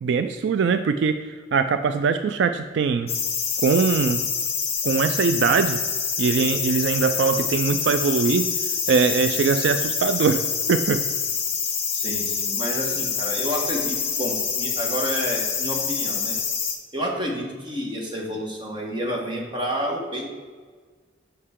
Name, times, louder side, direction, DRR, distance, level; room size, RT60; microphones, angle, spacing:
voice 1, 0.0-3.1 3.6-4.2 4.8-5.8 6.2-8.5 8.9-11.0, right 5 dB, 70° right, 9 dB, 0.3 m, -22 dB
sound 1, 3.1-16.8, left 6 dB, 35° left, 0.9 m, -26 dB
voice 2, 11.9-16.3 16.9-20.3, equal, 25° right, -1 dB, 1.2 m, -29 dB
6.6 x 5.4 x 3.6 m, 1.5 s
head